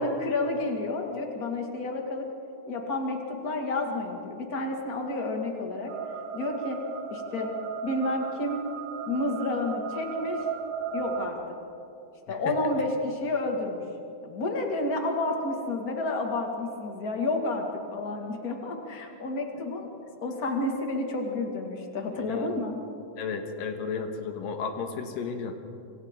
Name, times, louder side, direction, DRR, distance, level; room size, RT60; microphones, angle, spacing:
voice 1, 0.0-2.3 2.7-5.9 6.3-6.8 7.1-7.5 7.8-8.6 9.1-10.4 10.9-11.4 12.3-13.8 14.2-17.6 17.9-19.9 20.2-22.8, left 2 dB, 40° left, 2 dB, 1.3 m, -30 dB
sound 1, 5.9-11.3, right 7 dB, 65° right, 2.4 m, -36 dB
voice 2, 22.1-22.6 23.2-25.6, left 5 dB, 65° left, 5 dB, 2.7 m, -34 dB
26.5 x 26.0 x 3.8 m, 2.7 s
omnidirectional pair, 4.9 m